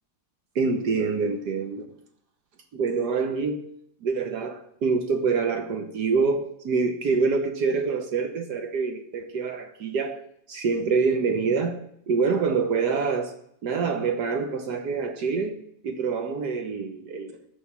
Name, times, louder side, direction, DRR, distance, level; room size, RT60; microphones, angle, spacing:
voice 1, 0.5-1.8 2.7-3.6 4.0-10.2 10.5-13.4 13.6-15.6 15.8-17.3, right 5 dB, 75° right, 6 dB, 1.6 m, -26 dB
13.0 x 5.3 x 7.4 m, 0.71 s
omnidirectional pair, 1.8 m